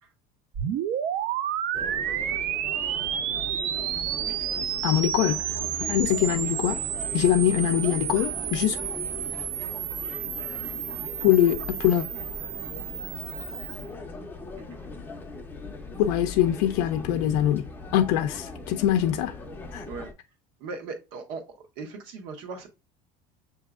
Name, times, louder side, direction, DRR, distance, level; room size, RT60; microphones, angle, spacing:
sound 1, 0.5-13.9, right 10 dB, 45° right, 0.4 m, -31 dB
sound 2, 1.7-20.1, left 3 dB, 10° left, 0.5 m, -40 dB
voice 1, 4.8-5.6 5.9-6.8 7.1-8.8 11.2-12.1 16.0-17.6 17.9-19.3 19.7-19.8, left 11 dB, 90° left, 0.4 m, -23 dB
voice 2, 14.5-15.0 19.8-20.1 20.6-22.7, right 4 dB, 80° right, 1.1 m, -39 dB
6.6 x 2.8 x 2.3 m
cardioid pair, 145°, 20 cm